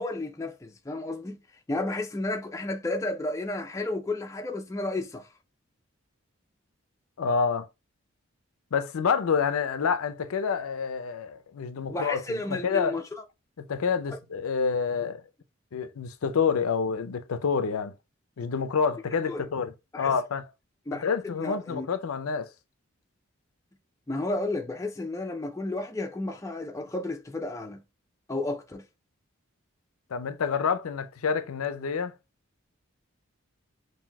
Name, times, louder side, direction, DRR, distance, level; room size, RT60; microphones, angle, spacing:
voice 1, 0.0-1.4 1.7-5.3 11.9-13.0 19.3-19.5 19.9-20.1 20.9-21.9 24.1-27.8 28.3-28.8, left 2 dB, 15° left, 0.4 m, -32 dB
voice 2, 7.2-7.7 8.7-12.2 12.6-12.9 13.6-15.2 15.7-17.9 18.4-20.4 21.0-22.5 30.1-32.1, left 6 dB, 90° left, 0.5 m, -28 dB
5.6 x 2.6 x 2.2 m
head